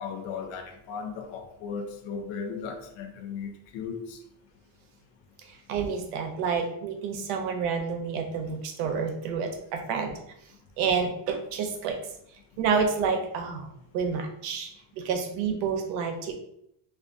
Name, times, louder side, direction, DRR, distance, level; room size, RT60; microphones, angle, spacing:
voice 1, 0.0-4.2, left 5 dB, 60° left, 4 dB, 0.5 m, -36 dB
voice 2, 5.5-10.2 10.8-12.0 12.6-14.7 15.0-16.3, right 5 dB, 90° right, 4 dB, 0.7 m, -29 dB
2.4 x 2.2 x 2.4 m, 0.74 s
cardioid pair, 155°, 50 cm